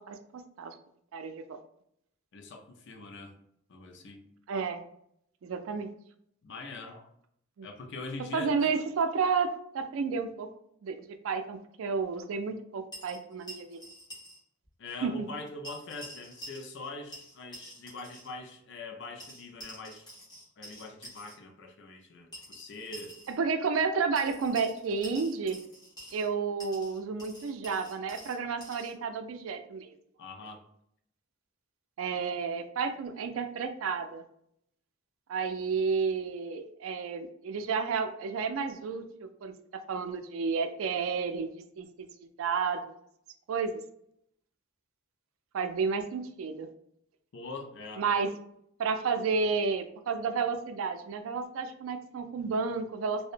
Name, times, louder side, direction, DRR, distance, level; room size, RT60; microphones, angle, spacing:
voice 1, 1.1-1.6 4.5-4.8 5.4-5.9 7.6-7.7 8.3-10.5 10.8-11.0 11.2-13.8 15.0-15.3 23.4-25.6 26.1-29.9 32.0-34.2 35.3-39.5 39.9-41.5 41.8-41.9 42.2-42.9 43.5-43.8 45.5-46.7 48.0-48.3 48.8-53.3, right 5 dB, 80° right, 8 dB, 0.3 m, -31 dB
voice 2, 2.3-3.3 3.7-4.2 6.4-7.1 7.6-8.7 14.8-20.1 20.6-23.2 30.2-30.6 47.3-48.0, left 3 dB, 60° left, 4 dB, 0.5 m, -43 dB
sound 1, 12.9-14.4 14.6-14.7 15.6-16.9 17.1-18.3 19.2-21.3 22.3-23.4 24.2-26.3 26.6-28.9, right 1 dB, 20° left, 1.1 m, -47 dB
2.8 x 2.1 x 2.5 m, 0.72 s
head